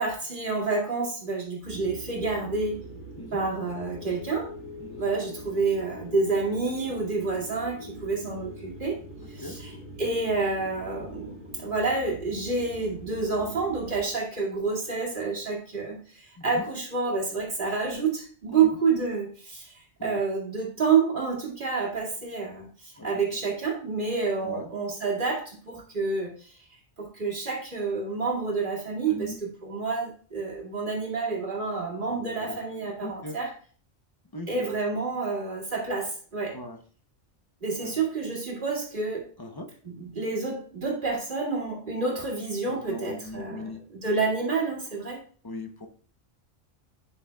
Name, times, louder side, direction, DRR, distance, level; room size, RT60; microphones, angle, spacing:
voice 1, 0.0-2.8 3.3-4.5 5.0-9.0 9.3-9.7 10.0-26.6 27.0-33.5 34.5-36.6 37.6-39.3 39.8-45.2, right 4 dB, 40° right, -3 dB, 2.4 m, -29 dB
sound 1, 1.6-14.0, equal, 65° right, 2.1 m, -43 dB
voice 2, 29.1-29.4 32.0-33.4 34.3-34.7 36.5-36.8 37.8-38.0 39.4-39.7 42.7-43.8 45.4-45.9, left 2 dB, 25° left, 5 dB, 0.6 m, -40 dB
11.0 x 6.2 x 2.3 m, 0.43 s
omnidirectional pair, 1.3 m